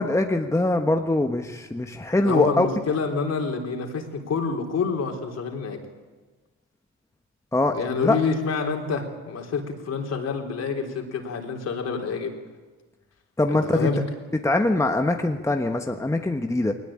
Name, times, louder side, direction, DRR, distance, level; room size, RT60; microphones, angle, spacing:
voice 1, 0.0-2.7 7.5-7.8 8.0-8.2 13.4-13.9 14.4-16.7, left 2 dB, 10° left, 5 dB, 1.3 m, -23 dB
voice 2, 2.2-5.8 7.7-12.3 13.5-14.0, left 5 dB, 55° left, 3 dB, 3.9 m, -27 dB
20.5 x 19.5 x 8.8 m, 1.3 s
cardioid pair, 90°, 30 cm